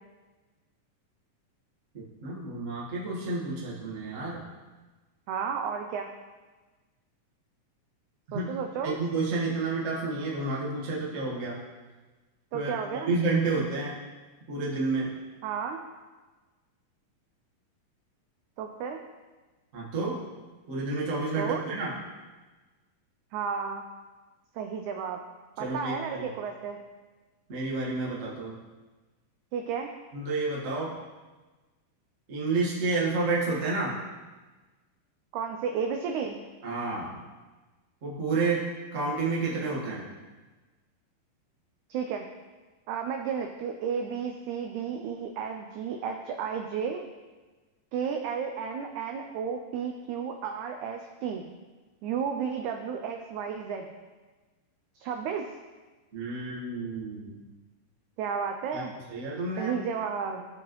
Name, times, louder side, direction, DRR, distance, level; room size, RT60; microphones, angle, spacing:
voice 1, 1.9-4.4 8.3-8.5 8.8-11.6 12.5-13.9 14.5-15.1 19.7-20.2 20.7-21.9 25.6-26.2 27.5-28.5 30.1-30.9 32.3-33.9 36.6-37.2 38.0-38.6 38.9-40.0 56.1-57.4 58.7-58.8 59.1-59.8, right 3 dB, 50° right, -5 dB, 0.9 m, -30 dB
voice 2, 5.3-6.1 8.3-9.0 12.5-13.1 15.4-15.8 18.6-19.0 21.4-21.6 23.3-23.8 24.5-25.2 25.6-26.8 29.5-29.9 35.3-36.4 41.9-42.3 42.9-47.0 47.9-51.4 52.0-53.9 55.0-55.4 58.2-58.9 59.6-60.5, right 6 dB, 90° right, 4 dB, 1.7 m, -32 dB
13.5 x 4.8 x 3.1 m, 1.3 s
omnidirectional pair, 4.0 m